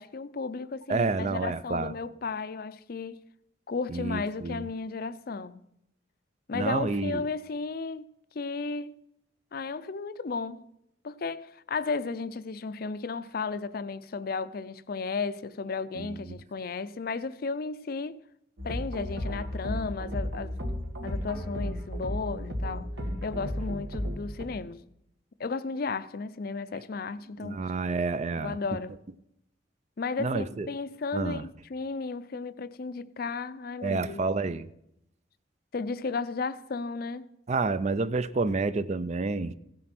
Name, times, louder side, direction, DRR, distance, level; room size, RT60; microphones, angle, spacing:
voice 1, 0.0-3.2 3.7-5.6 6.5-8.1 8.3-9.0 9.5-10.6 11.0-18.2 18.6-20.6 21.0-22.9 23.2-24.8 25.4-27.7 28.4-29.0 30.0-34.3 35.7-37.3, left 4 dB, 55° left, 0.5 m, -34 dB
voice 2, 0.9-1.9 3.9-4.7 6.5-7.2 16.0-16.4 27.4-28.6 30.2-30.7 31.1-31.4 33.8-34.7 37.5-39.6, right 3 dB, 40° right, 0.4 m, -29 dB
sound 1, 18.6-24.4, equal, 75° right, 2.1 m, -34 dB
16.0 x 7.6 x 6.0 m
head